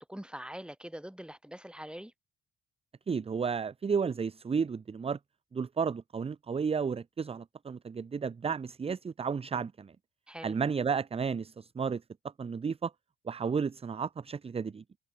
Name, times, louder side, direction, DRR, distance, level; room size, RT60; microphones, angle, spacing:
voice 1, 0.0-2.1 10.3-10.6, equal, 5° right, 3.6 m, -43 dB
voice 2, 3.1-5.2 5.5-9.9 10.4-12.0 12.4-12.9 13.2-14.8, right 6 dB, 20° right, 0.4 m, -32 dB
cardioid pair, 90°, 30 cm